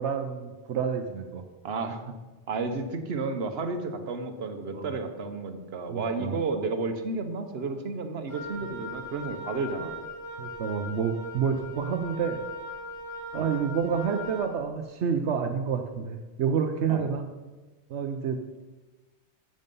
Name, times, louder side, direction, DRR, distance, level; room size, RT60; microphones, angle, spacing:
voice 1, 0.0-1.4 4.7-4.9 5.9-6.4 10.4-12.4 13.3-17.3 17.9-18.4, right 6 dB, 80° right, 4 dB, 1.0 m, -29 dB
voice 2, 1.6-2.1 2.5-10.0 13.3-13.5 16.9-17.1, right 3 dB, 65° right, 7 dB, 1.2 m, -32 dB
Wind instrument woodwind instrument, 8.3-14.5, left 1 dB, 65° left, 2.9 m, -39 dB
11.0 x 7.8 x 5.4 m, 1.2 s
omnidirectional pair, 1.1 m